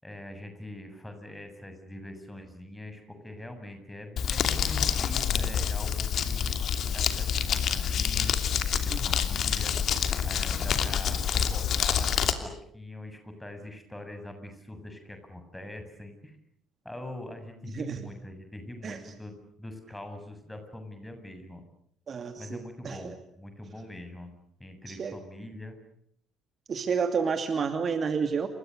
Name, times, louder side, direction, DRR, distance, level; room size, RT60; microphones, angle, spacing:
voice 1, 0.0-6.5 6.9-8.4 8.6-9.7 10.2-16.4 16.8-21.6 22.4-24.3 24.6-25.8, left 1 dB, 10° left, 7 dB, 7.6 m, -43 dB
Crumpling crinkling, 4.2-12.3, left 8 dB, 50° left, 2.8 m, -27 dB
voice 2, 22.1-22.6 22.8-23.0 24.9-25.1 26.7-28.5, right 6 dB, 40° right, 8 dB, 2.6 m, -30 dB
29.5 x 27.0 x 6.7 m, 0.68 s
figure-of-eight pair, 50°, 0 cm